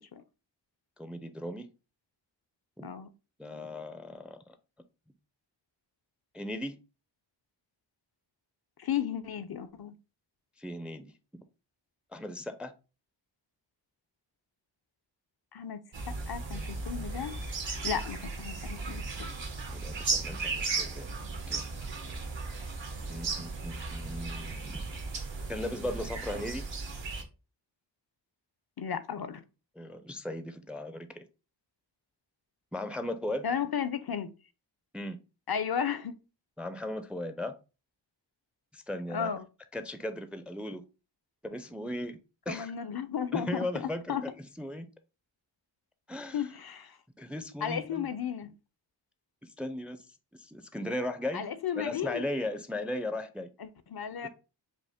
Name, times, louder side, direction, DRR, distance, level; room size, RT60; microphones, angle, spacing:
voice 1, 1.0-1.7 2.8-2.9 3.4-4.6 6.3-6.8 10.6-11.4 12.1-12.7 19.7-21.1 21.5-21.6 23.1-24.9 25.5-26.7 29.8-31.3 32.7-33.5 34.9-35.2 36.6-37.5 38.7-39.3 39.7-40.8 41.4-42.2 42.5-42.7 43.3-44.9 46.1-46.5 47.2-48.1 49.4-50.0 50.3-51.4 51.8-53.5 54.2-54.3, left 1 dB, 5° right, 0.4 m, -37 dB
voice 2, 8.8-9.9 15.5-17.3 17.8-19.3 28.8-29.4 33.4-34.3 35.5-36.1 39.1-39.5 42.5-43.7 44.1-44.2 46.3-47.0 47.6-48.5 51.3-52.2 53.6-54.3, left 8 dB, 55° left, 0.5 m, -34 dB
sound 1, 15.9-27.2, right 4 dB, 70° right, 1.0 m, -36 dB
5.1 x 2.1 x 3.4 m
wide cardioid pair, 50°, 46 cm